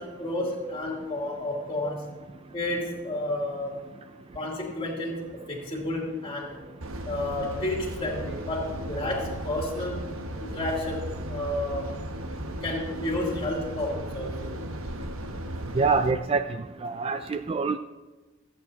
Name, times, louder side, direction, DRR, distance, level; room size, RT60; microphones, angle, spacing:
voice 1, 0.0-2.1 2.5-3.8 4.3-6.6 7.0-10.1 10.4-11.9 12.6-14.5, left 1 dB, 25° left, -2 dB, 2.9 m, -31 dB
sound 1, 6.8-16.1, right 1 dB, 90° right, 1.0 m, -36 dB
voice 2, 15.8-16.4 16.8-17.8, right 4 dB, 30° right, 9 dB, 0.3 m, -25 dB
26.0 x 8.9 x 2.8 m, 1.2 s
head